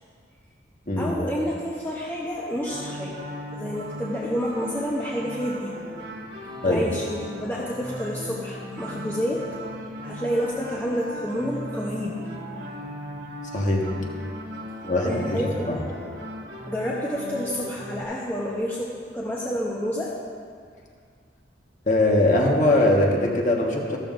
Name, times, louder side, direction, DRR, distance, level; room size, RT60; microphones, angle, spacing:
voice 1, 1.0-3.1 3.5-5.7 6.2-9.5 10.0-12.2 15.0-15.5 16.7-20.1, equal, 10° left, -5 dB, 0.9 m, -29 dB
sound 1, 2.6-18.0, equal, 70° right, 1.5 m, -37 dB
voice 2, 13.5-13.9 14.8-15.4 15.7-15.8 21.9-24.0, left 1 dB, 40° left, -1 dB, 1.5 m, -21 dB
14.5 x 13.0 x 2.6 m, 2.2 s
head